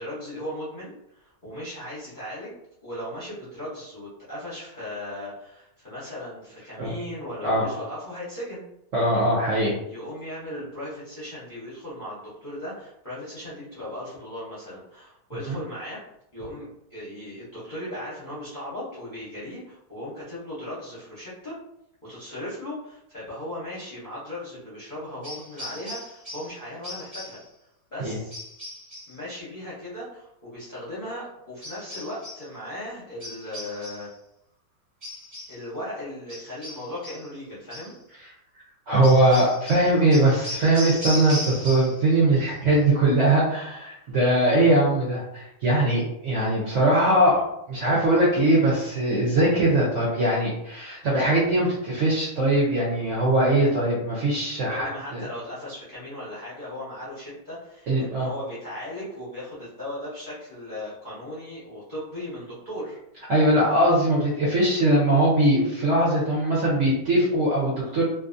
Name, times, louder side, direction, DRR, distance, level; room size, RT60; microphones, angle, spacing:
voice 1, 0.0-2.6 2.8-8.7 9.9-16.0 16.3-21.6 22.0-27.4 27.9-28.4 29.1-34.1 35.5-37.9 54.7-63.0, left 1 dB, 40° left, -10 dB, 0.7 m, -37 dB
voice 2, 8.9-9.8 15.5-15.6 28.0-28.2 38.9-55.2 57.9-58.3 63.3-68.0, right 1 dB, 60° right, -6 dB, 0.8 m, -21 dB
sound 1, 25.2-26.6 26.8-27.5 28.3-29.2 31.6-32.5 33.2-34.1 35.0-35.6 36.3-37.3 37.7-38.0 39.0-42.1 42.3-42.8, left 1 dB, 30° right, 0.7 m, -37 dB
2.6 x 2.5 x 2.5 m, 0.81 s
omnidirectional pair, 1.9 m